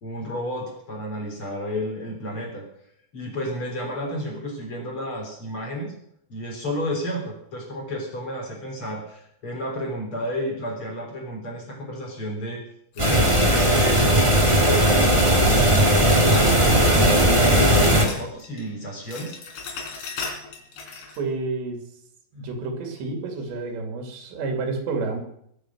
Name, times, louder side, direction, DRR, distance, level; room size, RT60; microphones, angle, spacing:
voice 1, 0.0-2.7 3.1-5.9 6.3-12.6 12.9-14.1 14.5-19.4, equal, 30° left, 1 dB, 4.1 m, -31 dB
sound 1, 12.9-15.1 16.3-17.3 17.6-18.7 18.9-21.2, left 4 dB, 70° left, 5.1 m, -38 dB
sound 2, 13.0-18.0, equal, 15° right, 1.0 m, -17 dB
voice 2, 21.2-21.8 22.3-25.2, right 3 dB, 85° right, 4 dB, 4.8 m, -29 dB
22.5 x 8.9 x 6.2 m, 0.71 s
omnidirectional pair, 4.9 m